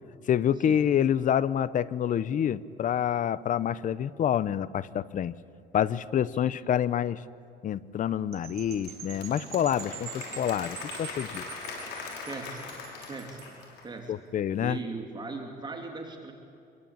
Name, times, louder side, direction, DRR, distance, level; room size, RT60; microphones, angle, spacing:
voice 1, 0.3-5.3 5.7-7.2 7.6-11.4 14.1-14.8, left 9 dB, 50° left, 17 dB, 0.9 m, -27 dB
sound 1, 8.3-13.6, right 12 dB, 70° right, 2.8 m, -45 dB
Applause / Crowd, 8.6-14.0, left 4 dB, 85° left, 6.5 m, -41 dB
voice 2, 12.3-12.8 13.1-13.6 13.8-14.1 14.6-16.3, right 3 dB, 25° right, 2 dB, 2.9 m, -39 dB
26.0 x 22.5 x 8.9 m, 2.6 s
cardioid pair, 110°, 17 cm